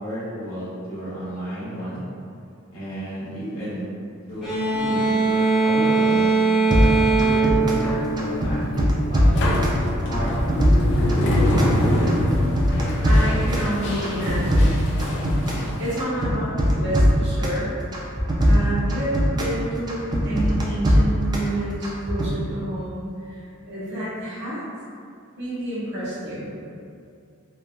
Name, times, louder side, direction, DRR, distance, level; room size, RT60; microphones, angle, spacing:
voice 1, 0.0-2.0 2.7-3.9 4.3-9.7 10.1-10.4 11.1-11.9, equal, 75° left, -11 dB, 1.0 m, -32 dB
sound 1, 4.4-8.9, right 3 dB, 5° right, 0.7 m, -21 dB
sound 2, 6.7-7.9 8.2-9.8 10.1-11.8 12.1-13.7 14.0-15.7 16.0-17.6 17.9-19.6 19.9-21.5 21.8-22.3, equal, 20° right, 0.3 m, -20 dB
sound 3, 7.6-16.0, left 1 dB, 55° left, 0.4 m, -25 dB
voice 2, 13.0-15.4 15.8-17.7 18.4-24.6 25.4-26.6, right 1 dB, 55° right, -9 dB, 0.9 m, -29 dB
3.1 x 2.2 x 2.4 m, 2.3 s
head